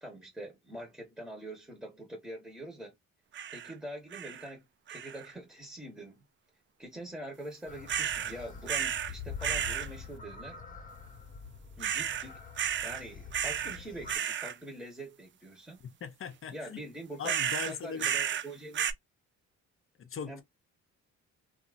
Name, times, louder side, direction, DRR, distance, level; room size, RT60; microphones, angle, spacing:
voice 1, 0.0-2.9 3.5-4.6 4.9-6.2 6.8-10.6 11.8-12.4 12.8-15.8 16.5-17.4 17.7-18.8 20.3-20.4, right 1 dB, 5° right, 1.1 m, -44 dB
sound 1, 3.3-3.7 4.1-4.5 4.9-5.3 7.9-8.3 8.7-9.1 9.4-9.9 11.8-12.3 12.6-13.0 13.3-13.8 14.1-14.5 17.2-18.5 18.7-18.9, right 9 dB, 40° right, 0.4 m, -32 dB
sound 2, 7.7-14.2, left 6 dB, 25° left, 1.2 m, -45 dB
voice 2, 16.0-16.8 17.2-18.1 20.0-20.4, left 6 dB, 45° left, 0.7 m, -39 dB
2.7 x 2.5 x 2.5 m
cardioid pair, 90°, 30 cm